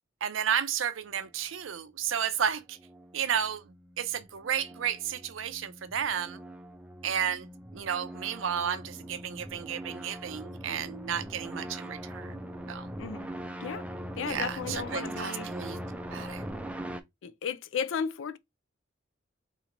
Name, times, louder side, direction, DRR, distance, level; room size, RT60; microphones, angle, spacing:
voice 1, 0.2-2.8 3.1-6.4 7.0-12.9 14.3-15.8 16.1-16.4, right 8 dB, 75° right, 0.5 m, -32 dB
sound 1, 2.5-17.0, right 1 dB, 5° right, 0.4 m, -41 dB
voice 2, 14.2-15.5 17.2-18.4, left 6 dB, 65° left, 0.4 m, -34 dB
4.2 x 2.9 x 2.5 m
head